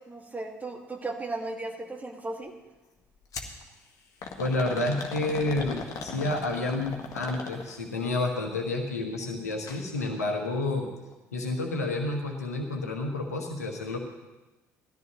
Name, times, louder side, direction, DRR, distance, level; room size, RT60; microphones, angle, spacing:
voice 1, 0.1-2.5, right 2 dB, 20° right, 2 dB, 2.0 m, -36 dB
sound 1, 3.3-3.6 4.2-7.9 9.5-9.8 10.2-10.3 11.1-11.2, left 4 dB, 45° left, 1.7 m, -38 dB
voice 2, 4.4-10.9 11.3-14.0, left 2 dB, 80° left, 3 dB, 1.4 m, -30 dB
18.0 x 13.5 x 3.0 m, 1.1 s
figure-of-eight pair, 50°, 8 cm